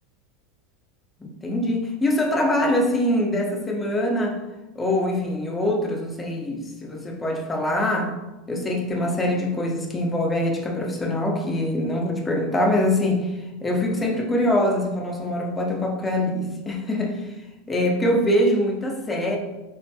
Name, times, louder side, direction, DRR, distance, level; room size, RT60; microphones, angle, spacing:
voice 1, 1.2-4.4 4.8-8.1 8.5-13.3 13.6-17.3 17.7-19.4, left 1 dB, 15° left, 1 dB, 0.5 m, -23 dB
3.1 x 2.6 x 2.3 m, 1.0 s
supercardioid pair, 120°, 0 cm